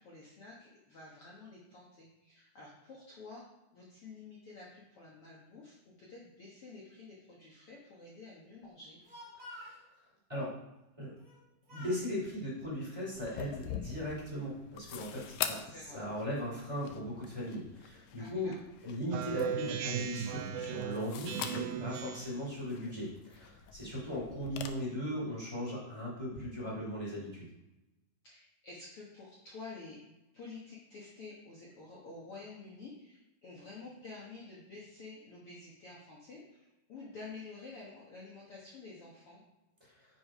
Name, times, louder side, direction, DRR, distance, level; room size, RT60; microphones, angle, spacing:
voice 1, 0.0-3.4 3.7-9.0 13.7-14.0 15.6-16.0 18.1-18.7 21.9-22.2 23.9-24.2 28.2-30.0 30.3-39.4, left 3 dB, 50° left, -5 dB, 2.0 m, -50 dB
Speech, 8.8-9.8 11.2-11.4 11.7-12.1 12.8-13.6, left 1 dB, 30° right, 2.3 m, -51 dB
voice 2, 11.7-18.5 18.8-27.5 39.8-40.1, equal, 10° right, -6 dB, 3.1 m, -38 dB
sound 1, 13.2-24.7, left 9 dB, 80° left, 1.7 m, -45 dB
Speech synthesizer, 19.1-22.4, right 8 dB, 80° right, 1.7 m, -37 dB
7.8 x 6.3 x 5.1 m, 0.97 s
omnidirectional pair, 3.9 m